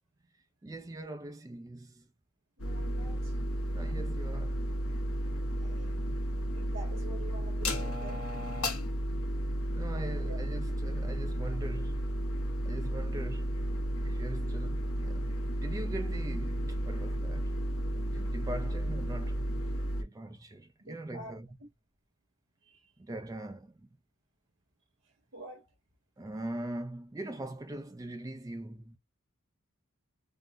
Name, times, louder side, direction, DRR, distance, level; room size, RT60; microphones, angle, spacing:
voice 1, 0.3-2.1 3.7-4.7 9.6-12.1 12.6-13.7 14.0-15.3 15.6-17.6 17.9-21.5 23.0-23.9 26.2-29.0, right 1 dB, 15° right, 0.3 m, -42 dB
sound 1, 2.6-20.0, equal, 85° left, 0.9 m, -33 dB
voice 2, 2.6-3.4 5.6-6.0 6.5-8.2 10.0-10.4 20.8-21.7 22.6-22.9 25.3-25.7, right 2 dB, 80° right, 1.5 m, -48 dB
3.5 x 2.1 x 2.5 m
head